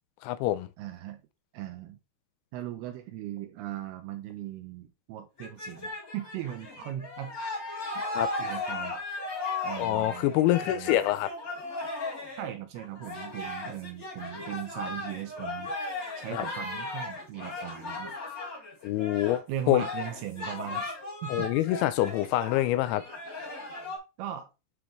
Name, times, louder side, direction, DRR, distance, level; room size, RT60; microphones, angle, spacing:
voice 1, 0.2-0.7 8.1-8.3 9.8-11.3 16.3-16.5 18.8-19.4 19.7-19.8 21.3-23.0, left 14 dB, 85° left, 2.8 m, -26 dB
voice 2, 0.8-1.2 1.5-2.0 2.5-7.4 7.9-8.0 8.4-9.0 9.6-10.4 10.6-11.0 12.4-15.7 16.2-18.2 19.5-21.5 24.2-24.5, right 11 dB, 85° right, 2.2 m, -39 dB
sound 1, 5.4-19.4 19.7-24.0, left 2 dB, 30° left, 1.6 m, -36 dB
9.7 x 3.7 x 3.1 m
omnidirectional pair, 5.3 m